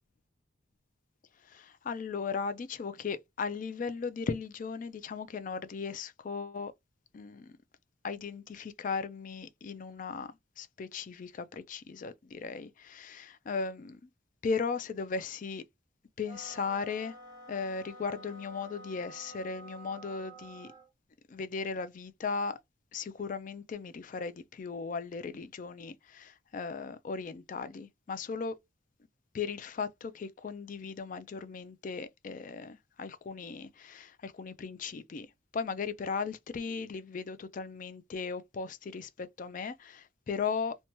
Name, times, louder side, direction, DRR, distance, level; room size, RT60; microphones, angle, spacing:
voice 1, 1.4-6.7 7.1-7.6 8.0-14.1 14.4-15.6 16.2-17.2 17.5-20.7 21.3-22.6 22.9-28.5 29.3-40.7, left 5 dB, 40° left, 0.3 m, -37 dB
sound 1, 16.2-20.9, right 1 dB, 20° right, 0.8 m, -50 dB
2.7 x 2.2 x 2.9 m
head